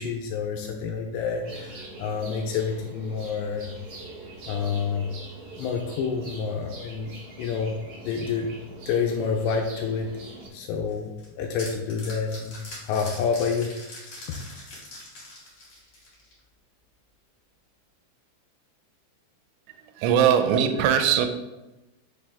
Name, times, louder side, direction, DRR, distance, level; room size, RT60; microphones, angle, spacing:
voice 1, 0.0-3.7 4.5-5.1 5.6-8.5 8.9-10.1 10.5-12.6 12.9-13.7 14.3-14.4, left 6 dB, 80° left, 3 dB, 2.6 m, -28 dB
sound 1, 1.4-10.5, right 2 dB, 70° right, 1.7 m, -43 dB
sound 2, 10.9-16.4, left 2 dB, 50° left, 1.6 m, -42 dB
voice 2, 19.7-21.3, right 8 dB, 85° right, 7 dB, 2.9 m, -21 dB
6.5 x 5.1 x 3.5 m, 1.0 s
omnidirectional pair, 5.4 m